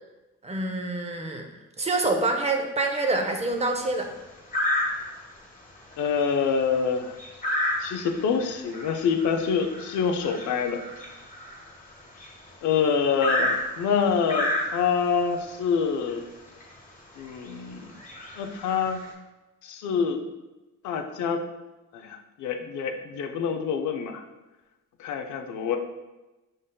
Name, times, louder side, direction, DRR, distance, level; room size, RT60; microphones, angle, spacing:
voice 1, 0.4-1.4 1.8-4.1, right 2 dB, 20° right, 3 dB, 0.5 m, -26 dB
sound 1, 3.4-3.8 4.5-5.3 5.8-5.9 6.2-12.5 13.2-15.1 16.1-16.2 16.6-16.7 17.3-17.5 17.9-19.1, left 1 dB, 25° left, 1.2 m, -30 dB
voice 2, 6.0-7.2 7.8-10.8 12.6-16.2 17.2-17.9 18.4-19.0 19.6-20.2 20.8-21.4 21.9-24.2 25.0-25.8, left 6 dB, 75° left, 5 dB, 0.5 m, -26 dB
5.0 x 3.9 x 2.2 m, 1.1 s
cardioid pair, 90°, 30 cm